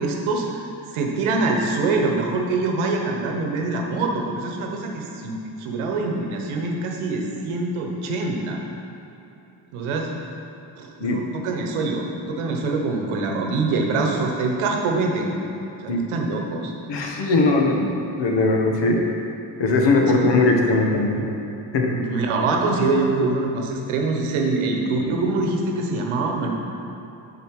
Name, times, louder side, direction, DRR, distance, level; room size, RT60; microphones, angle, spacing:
voice 1, 0.0-8.6 9.7-10.1 10.8-15.4 15.8-16.7 17.3-17.6 21.9-26.5, right 3 dB, 80° right, 1 dB, 1.0 m, -24 dB
voice 2, 16.9-19.0 19.6-21.3 21.7-21.9, left 2 dB, 60° left, 1 dB, 1.2 m, -20 dB
6.5 x 5.2 x 4.7 m, 2.9 s
supercardioid pair, 55°, 48 cm